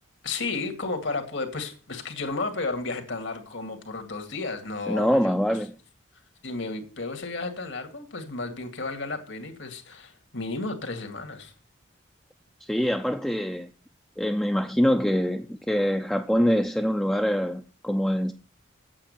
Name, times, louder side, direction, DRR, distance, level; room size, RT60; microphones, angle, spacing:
voice 1, 0.2-5.4 6.4-11.5, left 3 dB, 70° left, 2.3 m, -33 dB
voice 2, 4.9-5.7 12.6-13.7 14.2-18.3, equal, 5° left, 0.5 m, -24 dB
8.8 x 8.5 x 6.8 m
head